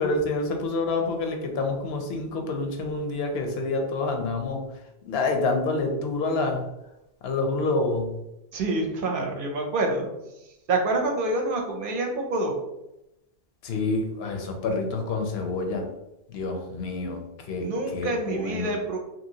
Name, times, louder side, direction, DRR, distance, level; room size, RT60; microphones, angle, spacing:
voice 1, 0.0-4.6 5.1-6.6 7.2-8.1 13.6-15.9 16.3-18.7, left 3 dB, 80° left, 4 dB, 0.8 m, -27 dB
voice 2, 8.5-10.1 10.7-12.5 17.6-19.0, right 2 dB, 60° right, 1 dB, 0.7 m, -27 dB
2.8 x 2.7 x 2.7 m, 0.89 s
omnidirectional pair, 1.1 m